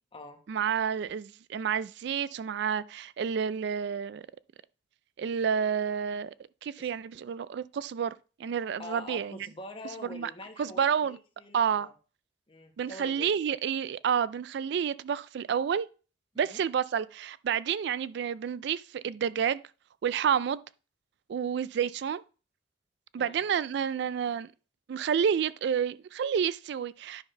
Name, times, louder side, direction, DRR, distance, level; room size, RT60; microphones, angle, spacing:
voice 1, 0.5-4.2 5.2-6.3 6.6-8.1 8.4-9.5 10.1-10.3 10.6-11.2 11.5-11.9 12.8-15.9 16.4-19.6 20.0-20.6 21.3-22.2 23.1-24.5 24.9-27.2, right 7 dB, 65° right, 0.3 m, -29 dB
voice 2, 8.8-11.9 12.5-13.3 16.3-16.6 23.2-23.4, left 2 dB, 30° left, 1.3 m, -45 dB
9.8 x 3.8 x 5.5 m
head